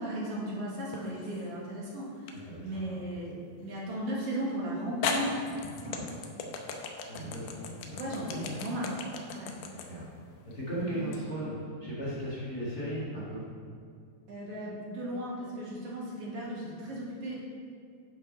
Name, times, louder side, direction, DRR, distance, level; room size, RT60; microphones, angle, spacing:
voice 1, 0.0-5.4 5.8-6.1 7.1-8.9 9.3-9.5 10.8-11.1 14.3-17.4, right 1 dB, 45° right, -5 dB, 2.3 m, -36 dB
sound 1, 0.9-1.5 2.3-2.4 4.3-4.4 5.0-11.2, left 5 dB, 75° left, 1.9 m, -36 dB
voice 2, 7.1-8.0 8.3-8.5 9.9-10.0 10.5-11.5 11.8-13.4, right 1 dB, 40° left, -8 dB, 1.4 m, -36 dB
9.4 x 6.2 x 5.4 m, 2.2 s
omnidirectional pair, 4.4 m